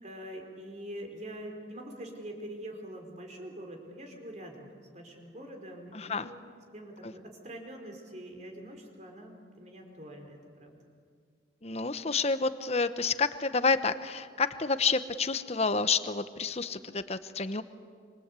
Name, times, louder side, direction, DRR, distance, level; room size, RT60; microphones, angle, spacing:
voice 1, 0.0-6.4 6.7-10.8, right 1 dB, 40° right, 3 dB, 4.5 m, -44 dB
voice 2, 5.9-6.3 7.0-7.1 11.6-17.6, left 4 dB, 35° left, 11 dB, 1.0 m, -29 dB
27.0 x 26.0 x 8.4 m, 2.1 s
head